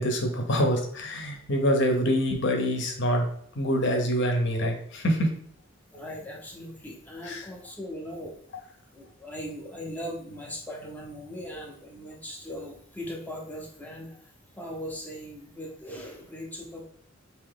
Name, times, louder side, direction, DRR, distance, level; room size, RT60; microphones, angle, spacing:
voice 1, 0.0-3.2 3.6-5.3 7.2-7.5, equal, 55° left, 3 dB, 0.8 m, -25 dB
voice 2, 5.9-8.4 8.9-14.2 14.6-16.9, equal, 10° left, -1 dB, 0.6 m, -39 dB
3.7 x 2.9 x 3.6 m, 0.63 s
head